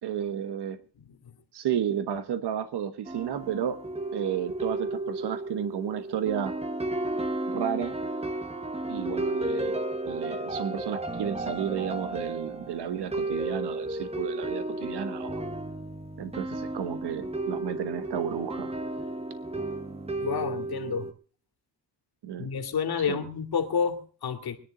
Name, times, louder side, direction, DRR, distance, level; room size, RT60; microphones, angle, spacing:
voice 1, 0.0-0.8 1.5-3.8 4.1-6.5 7.5-8.0 8.9-15.4 16.2-18.8 22.2-22.5 23.0-23.3, right 9 dB, 70° right, 11 dB, 1.3 m, -32 dB
sound 1, 3.0-21.1, right 2 dB, 15° right, 1.3 m, -33 dB
voice 2, 20.2-21.1 22.4-24.6, left 6 dB, 60° left, 6 dB, 2.4 m, -29 dB
23.5 x 10.5 x 3.9 m, 0.42 s
cardioid pair, 110°, 41 cm